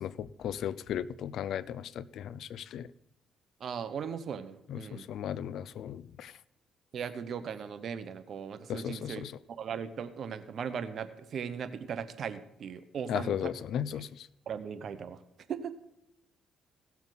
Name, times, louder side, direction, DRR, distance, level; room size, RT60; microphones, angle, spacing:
voice 1, 0.0-2.9 4.7-6.3 8.7-9.3 13.1-14.3, left 9 dB, 75° left, 18 dB, 0.5 m, -36 dB
voice 2, 3.6-5.1 6.9-13.5 13.9-14.0 14.5-15.2 15.5-15.7, right 7 dB, 60° right, 12 dB, 0.9 m, -38 dB
17.0 x 7.0 x 4.0 m, 0.85 s
cardioid pair, 90°, 0 cm